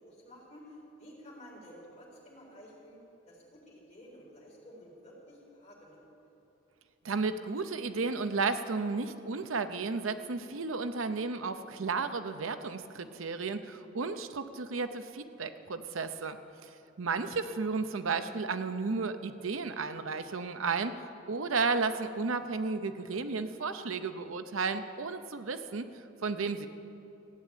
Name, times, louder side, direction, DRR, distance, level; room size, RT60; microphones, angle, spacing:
voice 1, 0.0-3.0 3.3-6.1 17.4-17.5, equal, 35° left, -4 dB, 4.0 m, -52 dB
voice 2, 7.0-16.4 16.6-16.7 17.0-20.9 21.3-25.9 26.2-26.7, right 4 dB, 90° right, 10 dB, 0.7 m, -33 dB
15.5 x 9.1 x 8.6 m, 2.9 s
head